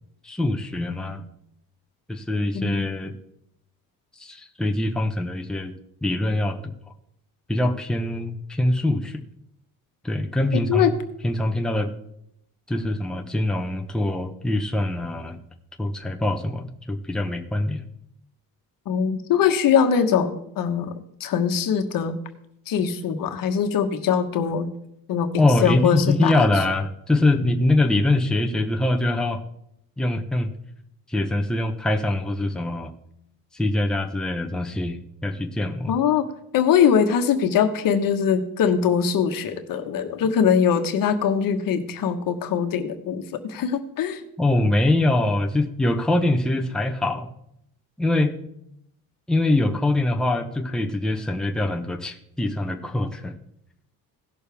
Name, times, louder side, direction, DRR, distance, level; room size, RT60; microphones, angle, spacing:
voice 1, 0.2-1.2 2.1-3.1 4.2-5.7 6.0-6.6 7.5-9.2 10.0-10.9 11.2-11.9 12.7-15.4 15.8-17.8 25.4-29.4 30.0-30.5 31.1-32.9 33.5-35.9 44.4-47.3 48.0-48.4 49.3-53.3, left 2 dB, ahead, 4 dB, 0.9 m, -23 dB
voice 2, 2.5-2.9 10.7-10.9 18.9-20.9 21.2-22.2 22.7-24.7 25.1-26.4 35.9-36.3 36.5-44.2, left 7 dB, 65° left, 6 dB, 1.3 m, -22 dB
17.0 x 6.6 x 3.5 m, 0.76 s
cardioid pair, 110°, 37 cm